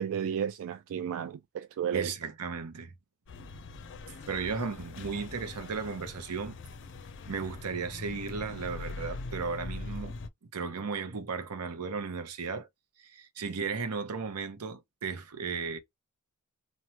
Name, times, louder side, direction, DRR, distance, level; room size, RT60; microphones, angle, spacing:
voice 1, 0.0-2.1, right 8 dB, 65° right, 0.3 m, -32 dB
voice 2, 1.9-2.9 4.3-6.6 7.3-10.1 10.5-12.7 13.0-15.8, right 5 dB, 85° right, 0.7 m, -35 dB
sound 1, 3.3-10.3, left 3 dB, 55° left, 0.5 m, -42 dB
3.1 x 2.1 x 2.8 m
head